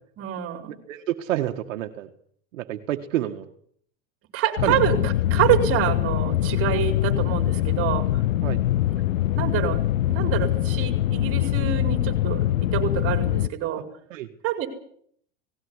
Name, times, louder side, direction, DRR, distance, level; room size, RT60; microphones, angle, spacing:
voice 1, 0.2-0.8 4.3-8.2 9.3-9.8 10.1-13.9 14.4-14.7, right 11 dB, 35° right, 7 dB, 4.7 m, -26 dB
voice 2, 0.9-2.1 2.5-3.5 4.6-4.7 8.4-8.6 14.1-14.3, right 13 dB, 75° right, 5 dB, 1.9 m, -28 dB
sound 1, 4.6-13.5, left 13 dB, 90° left, 0.9 m, -23 dB
19.0 x 16.5 x 9.8 m, 0.63 s
supercardioid pair, 130°, 39 cm